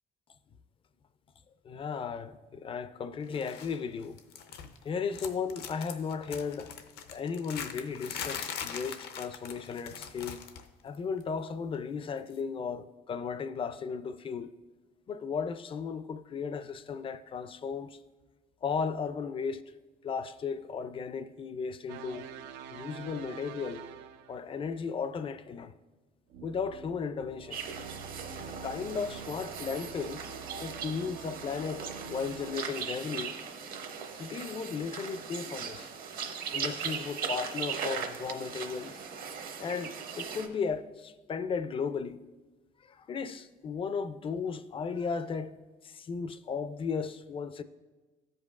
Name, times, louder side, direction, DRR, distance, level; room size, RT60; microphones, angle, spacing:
voice 1, 1.6-4.2 4.8-6.7 7.1-10.4 10.8-14.5 15.1-18.0 18.6-19.6 20.0-22.2 22.7-23.8 24.3-25.7 26.4-27.6 28.5-30.2 30.6-33.4 34.1-35.9 36.5-39.0 39.6-42.2 42.8-45.6 45.8-47.6, left 5 dB, 30° left, 0.4 m, -35 dB
sound 1, 3.3-3.8 4.0-4.8 5.1-10.7 10.9-11.2 12.3-12.4, left 7 dB, 75° left, 0.6 m, -41 dB
sound 2, 21.9-24.5 26.3-32.6, right 7 dB, 90° right, 0.4 m, -46 dB
sound 3, 27.5-40.5, right 6 dB, 60° right, 0.8 m, -39 dB
14.0 x 5.2 x 2.4 m
cardioid pair, 110°, 17 cm